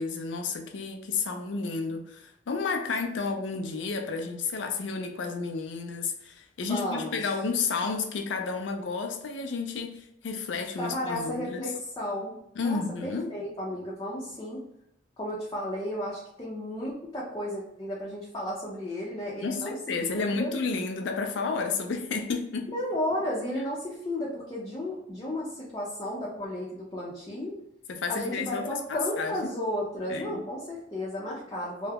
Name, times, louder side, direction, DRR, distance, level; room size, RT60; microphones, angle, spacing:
voice 1, 0.0-11.6 12.6-13.3 19.4-22.7 27.9-29.4 30.1-30.4, left 4 dB, 75° left, 5 dB, 0.4 m, -31 dB
voice 2, 6.7-7.2 10.8-14.6 15.2-19.7 20.1-20.5 22.7-27.5 28.1-31.9, left 1 dB, 20° left, -6 dB, 0.5 m, -33 dB
2.2 x 2.0 x 3.3 m, 0.75 s
head